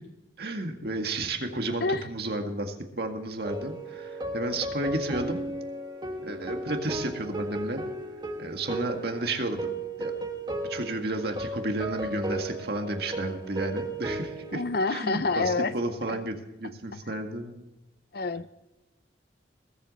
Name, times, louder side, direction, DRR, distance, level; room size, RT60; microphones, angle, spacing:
voice 1, 0.4-5.4 6.2-7.8 8.4-10.1 10.7-14.6 14.9-16.3 16.6-17.7, right 2 dB, 60° right, 4 dB, 1.9 m, -32 dB
sound 1, 3.4-14.7, right 1 dB, 25° right, 1.5 m, -35 dB
voice 2, 14.5-15.7 16.1-16.2 18.1-18.5, left 3 dB, 55° left, 13 dB, 0.7 m, -27 dB
21.0 x 8.3 x 4.2 m, 1.0 s
head